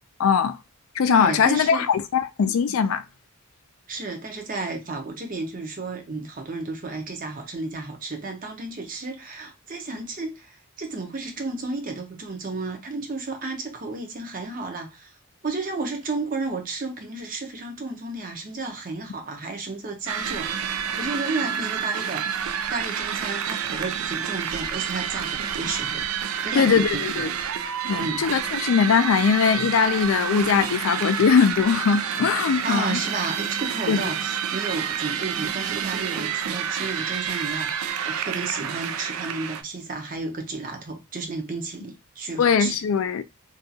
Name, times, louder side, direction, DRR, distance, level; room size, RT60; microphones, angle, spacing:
voice 1, 0.2-0.6 1.0-3.0 26.5-27.3 27.8-33.0 33.9-34.0 42.4-43.2, left 6 dB, 70° left, 0.3 m, -21 dB
voice 2, 1.1-1.9 3.9-15.1 15.4-22.3 22.7-26.1 26.4-27.4 28.0-28.3 32.6-42.8, right 3 dB, 40° right, 0.7 m, -32 dB
sound 1, 20.1-39.6, right 8 dB, 80° right, 0.4 m, -29 dB
2.6 x 2.4 x 2.7 m
head